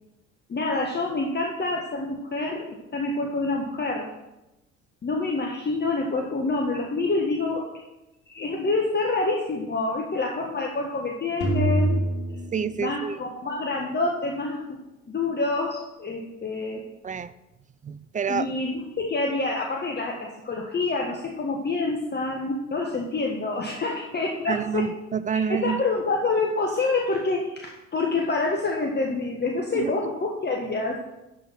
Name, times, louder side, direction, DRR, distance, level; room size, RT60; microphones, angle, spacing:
voice 1, 0.5-2.7 2.9-4.1 5.0-7.6 8.3-12.0 12.8-14.6 15.1-16.8 18.3-24.8 25.5-30.9, left 3 dB, 25° left, 0 dB, 1.6 m, -27 dB
sound 1, 11.4-13.6, right 1 dB, 65° left, 2.9 m, -26 dB
voice 2, 12.5-13.2 17.0-17.3 17.8-18.5 24.5-25.8 29.7-29.9, right 6 dB, 20° right, 15 dB, 0.4 m, -28 dB
12.0 x 4.9 x 5.8 m, 0.96 s
hypercardioid pair, 60°, 39 cm